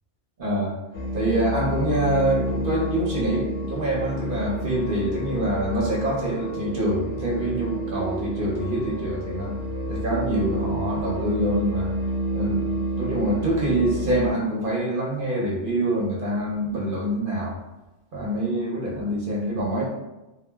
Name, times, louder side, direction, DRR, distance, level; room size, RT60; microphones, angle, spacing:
voice 1, 0.4-0.7 1.1-9.5 9.9-11.9 12.3-17.6 18.1-19.8, right 1 dB, 55° right, -4 dB, 0.7 m, -25 dB
sound 1, 0.9-14.3, equal, 80° left, 0.9 m, -30 dB
2.9 x 2.1 x 2.2 m, 1.0 s
omnidirectional pair, 1.2 m